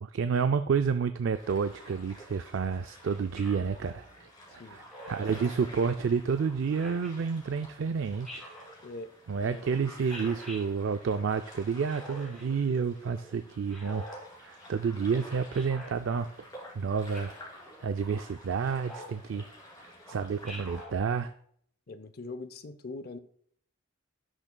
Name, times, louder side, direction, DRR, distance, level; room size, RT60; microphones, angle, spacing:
voice 1, 0.0-8.4 9.3-14.0 14.4-16.5 16.8-19.5 19.8-21.3, right 6 dB, 65° right, 9 dB, 0.3 m, -30 dB
sound 1, 1.3-20.8, left 1 dB, 20° left, 2.5 m, -50 dB
Speech synthesizer, 3.4-3.7 4.9-5.3 6.7-7.1 8.2-8.7 10.1-10.6 11.8-12.4 13.7-14.2 15.5-15.9 17.1-17.5 18.8-19.2 20.4-20.9, equal, 5° left, 3.5 m, -45 dB
voice 2, 9.4-9.8 21.9-23.2, left 3 dB, 45° left, 10 dB, 0.5 m, -42 dB
17.0 x 6.1 x 2.2 m, 0.65 s
head